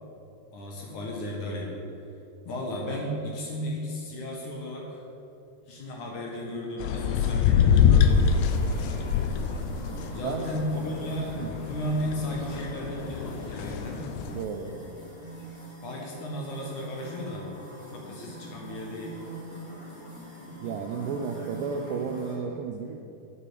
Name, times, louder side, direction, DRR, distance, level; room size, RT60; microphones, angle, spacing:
voice 1, 0.5-1.7 2.5-5.0 5.7-8.4 10.1-14.1 15.8-17.5 17.9-19.2, equal, 60° left, -1 dB, 2.5 m, -34 dB
sound 1, 6.8-14.4, left 7 dB, 80° left, 2.7 m, -25 dB
sound 2, 8.0-22.3, equal, 25° left, 3.4 m, -43 dB
voice 2, 14.3-14.8 20.6-23.0, right 6 dB, 85° right, 3 dB, 1.9 m, -32 dB
9.3 x 8.6 x 8.3 m, 2.7 s
omnidirectional pair, 4.8 m